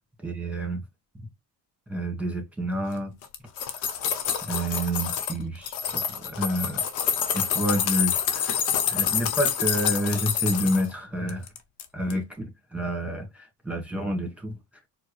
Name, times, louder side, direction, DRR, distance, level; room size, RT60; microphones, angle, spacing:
voice 1, 0.2-0.8 1.9-3.1 4.5-6.8 7.3-8.6 8.9-11.4 11.9-14.5, equal, 5° right, 1.6 m, -29 dB
sound 1, 3.2-5.4 5.7-10.9 11.3-11.8 12.1-12.2, left 8 dB, 85° left, 0.8 m, -27 dB
4.4 x 2.2 x 3.1 m
supercardioid pair, 70°, 44 cm